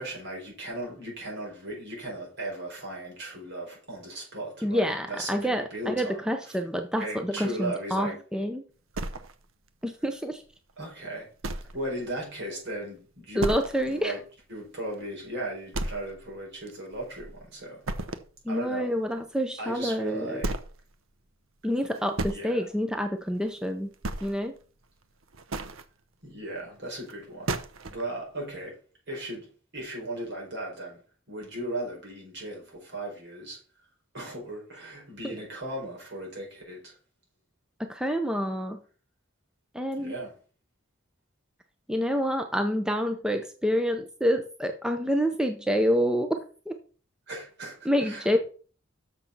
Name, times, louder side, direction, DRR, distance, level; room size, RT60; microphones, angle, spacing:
voice 1, 0.0-6.6 7.0-8.2 10.8-11.3 11.7-13.5 13.9-14.2 14.5-17.8 18.5-18.9 19.6-20.6 22.2-22.6 26.2-27.5 27.9-28.8 29.1-29.5 29.7-31.0 31.3-33.6 34.1-37.0 40.0-40.3 47.3-48.4, right 1 dB, 60° right, -1 dB, 4.9 m, -37 dB
voice 2, 4.6-8.6 9.8-10.4 13.4-14.1 18.5-20.4 21.6-23.9 24.2-24.5 35.2-35.3 37.8-38.8 39.7-40.1 41.9-46.4 46.7-46.8 47.8-48.4, equal, 5° right, 6 dB, 0.6 m, -27 dB
sound 1, 8.9-9.7 10.1-10.2 10.7-10.8 11.4-11.9 12.2-12.3 12.7-12.8 13.4-13.9 14.3-14.4 14.9-15.0 15.7-16.3 16.7-17.4 17.8-18.4 19.7-19.8 20.4-20.8 21.8-22.4 23.4-23.6 23.9-24.6 25.2-25.8 27.1-27.2 27.5-28.0, right 2 dB, 80° right, 0.8 m, -33 dB
6.7 x 6.1 x 6.0 m, 0.40 s
head